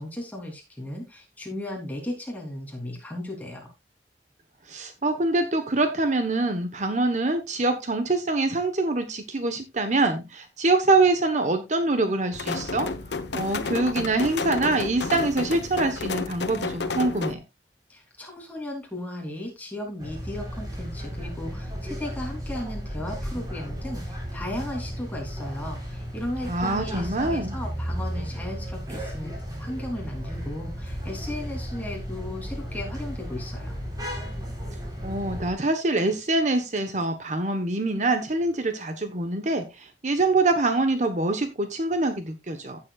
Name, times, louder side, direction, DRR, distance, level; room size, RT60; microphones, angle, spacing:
voice 1, 0.0-3.7 17.9-33.8, left 1 dB, 10° left, 0 dB, 3.3 m, -36 dB
voice 2, 4.7-12.9 13.3-17.4 26.5-27.6 35.0-42.8, right 2 dB, 40° right, 7 dB, 1.1 m, -25 dB
sound 1, 12.3-17.3, left 3 dB, 80° left, 1.1 m, -31 dB
sound 2, 20.0-35.5, equal, 20° right, 4.1 m, -34 dB
15.5 x 7.4 x 2.4 m, 0.24 s
head